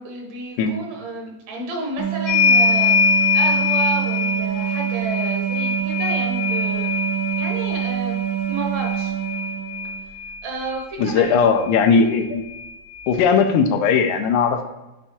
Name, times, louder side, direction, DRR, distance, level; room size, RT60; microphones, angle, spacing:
voice 1, 0.0-6.9 7.4-8.2 8.5-9.1 10.4-11.3, right 3 dB, 70° right, 1 dB, 2.1 m, -31 dB
sound 1, 2.0-10.1, right 11 dB, 25° right, 0.5 m, -26 dB
sound 2, 2.3-10.4 11.6-11.7 12.0-13.1, left 5 dB, 60° left, 1.1 m, -23 dB
voice 2, 11.0-12.5 13.1-14.6, left 5 dB, 85° left, 7 dB, 2.0 m, -18 dB
7.7 x 3.4 x 4.3 m, 1.0 s
omnidirectional pair, 3.6 m